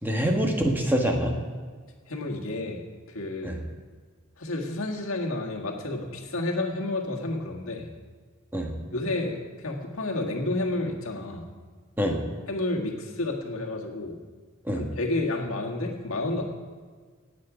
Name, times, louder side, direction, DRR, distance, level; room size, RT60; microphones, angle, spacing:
voice 1, 0.0-1.4 3.4-3.6 8.5-8.7 12.0-12.2 14.7-14.8, equal, 10° right, 1 dB, 1.4 m, -25 dB
voice 2, 2.1-3.6 4.4-7.9 8.9-11.5 12.5-14.2 14.8-16.4, left 2 dB, 80° left, 0 dB, 1.8 m, -30 dB
18.5 x 7.7 x 5.0 m, 1.5 s
head